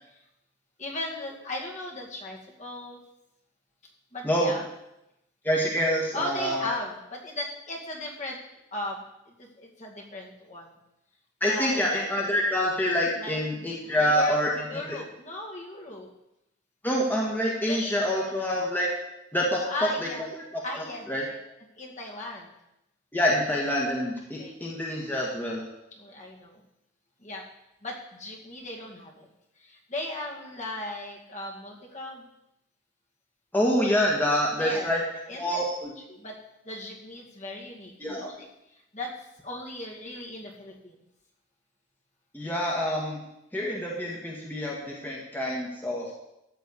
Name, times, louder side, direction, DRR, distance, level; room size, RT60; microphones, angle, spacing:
voice 1, 0.8-3.0 4.1-4.7 6.1-8.4 8.7-10.7 11.4-11.9 13.2-13.7 14.0-14.4 14.6-16.1 17.7-17.9 18.2-18.3 19.6-20.2 20.6-21.4 21.8-22.5 24.4-24.6 25.9-26.6 27.2-27.4 27.8-29.3 29.6-32.3 34.6-35.0 35.3-35.6 36.1-36.4 36.6-38.5 38.9-41.0, left 2 dB, 40° left, -2 dB, 2.2 m, -37 dB
voice 2, 5.4-6.7 11.4-15.0 16.8-18.9 19.3-19.6 20.2-20.3 20.5-20.6 21.1-21.2 23.1-25.6 33.5-35.0 35.3-35.9 38.0-38.2 42.3-43.2 43.5-46.1, equal, 10° left, -3 dB, 1.7 m, -26 dB
13.5 x 4.6 x 8.3 m, 0.86 s
head